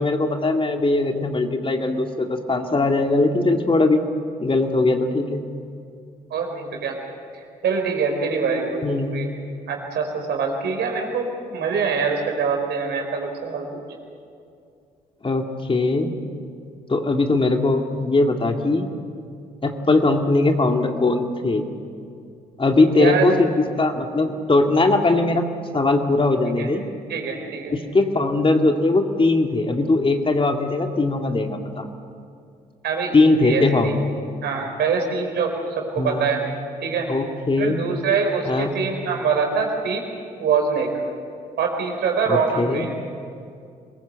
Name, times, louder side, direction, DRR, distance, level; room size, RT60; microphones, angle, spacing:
voice 1, 0.0-4.0 4.4-5.4 8.8-9.2 15.2-16.2 16.9-18.9 19.6-21.7 22.6-25.4 25.7-26.9 27.7-31.9 33.1-34.1 36.0-36.3 37.1-37.8 38.5-38.7 42.3-42.8, left 2 dB, 30° left, 4 dB, 2.3 m, -20 dB
voice 2, 6.3-6.9 7.6-9.3 9.7-13.8 22.9-23.3 26.6-26.7 27.1-27.7 32.8-33.9 34.4-36.4 36.8-37.1 37.6-40.0 40.4-40.9 41.6-42.9, right 5 dB, 60° right, 2 dB, 4.5 m, -24 dB
23.5 x 21.5 x 8.1 m, 2.4 s
hypercardioid pair, 45°, 19 cm